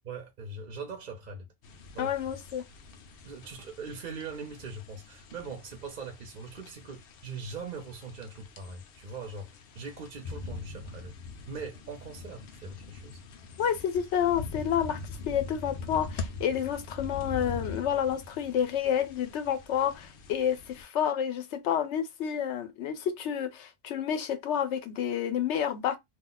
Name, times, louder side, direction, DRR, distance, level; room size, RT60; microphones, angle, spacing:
voice 1, 0.0-1.5 1.9-2.1 3.2-9.5 9.7-11.1 11.5-13.2, right 4 dB, 50° right, 0.7 m, -41 dB
sound 1, 1.6-20.8, left 4 dB, 65° left, 0.7 m, -43 dB
voice 2, 2.0-2.6 13.6-15.0 15.2-26.0, left 9 dB, 90° left, 0.9 m, -29 dB
2.4 x 2.1 x 3.8 m
omnidirectional pair, 1.2 m